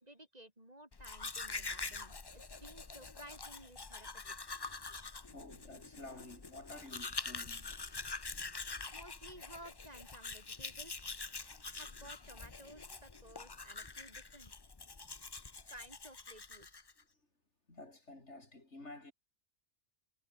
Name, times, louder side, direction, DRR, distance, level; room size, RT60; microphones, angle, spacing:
voice 1, 0.0-4.6 8.9-11.1 11.6-14.5 15.7-16.8, right 1 dB, 30° right, 4.8 m, -55 dB
Domestic sounds home sounds, 0.9-17.0, left 4 dB, 25° left, 0.7 m, -45 dB
voice 2, 5.3-8.0 8.5-8.6 8.8-8.9 9.3-9.4 11.3-11.5 11.8-12.1 17.7-19.1, left 2 dB, 65° left, 5.0 m, -52 dB
omnidirectional pair, 1.3 m